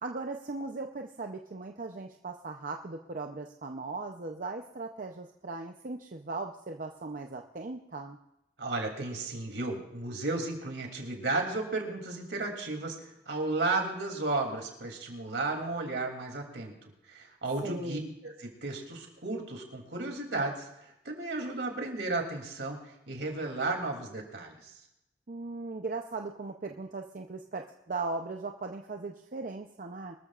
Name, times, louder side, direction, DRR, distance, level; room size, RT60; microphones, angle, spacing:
voice 1, 0.0-8.2 17.6-18.1 25.3-30.1, right 3 dB, 50° right, 3 dB, 0.7 m, -38 dB
voice 2, 8.6-12.9 13.3-16.7 17.1-20.7 21.0-22.8 23.1-24.7, right 2 dB, 75° right, 2 dB, 3.0 m, -33 dB
24.0 x 13.5 x 2.5 m, 0.86 s
head